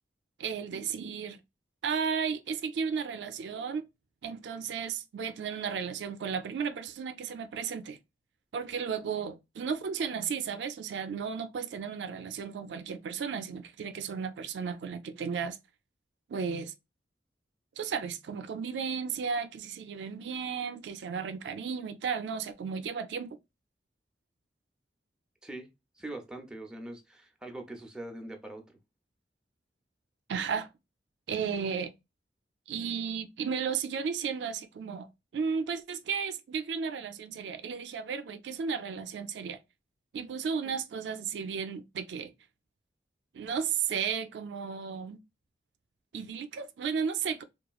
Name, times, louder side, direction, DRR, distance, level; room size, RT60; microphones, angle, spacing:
voice 1, 0.4-1.4 1.8-3.8 4.2-8.0 8.5-15.6 16.3-16.7 17.8-23.4 30.3-30.7 31.3-31.9 32.7-39.6 40.1-42.3 43.3-45.2 46.1-47.4, right 6 dB, 75° right, 0.4 m, -34 dB
voice 2, 26.0-28.8, right 1 dB, 5° right, 0.5 m, -42 dB
2.9 x 2.3 x 2.3 m
head